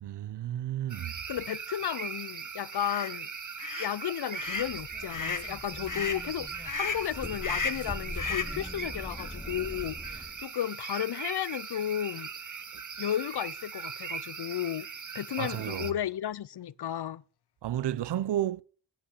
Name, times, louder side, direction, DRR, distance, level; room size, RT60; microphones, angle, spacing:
voice 1, 0.0-1.1 15.4-15.9 17.6-18.6, right 12 dB, 65° right, 0.5 m, -32 dB
sound 1, 0.9-15.9, right 6 dB, 40° right, 0.9 m, -40 dB
voice 2, 1.3-3.3 3.8-12.3 13.0-14.9 15.1-17.2, left 10 dB, 60° left, 0.6 m, -33 dB
sound 2, 2.8-3.1 3.6-3.9 4.3-4.7 5.1-5.5 5.9-6.2 6.7-7.1 7.4-7.9 8.2-8.6, left 5 dB, 45° left, 1.2 m, -34 dB
sound 3, 4.5-10.4, left 1 dB, 10° left, 1.1 m, -42 dB
10.5 x 8.4 x 5.6 m
cardioid pair, 45°, 45 cm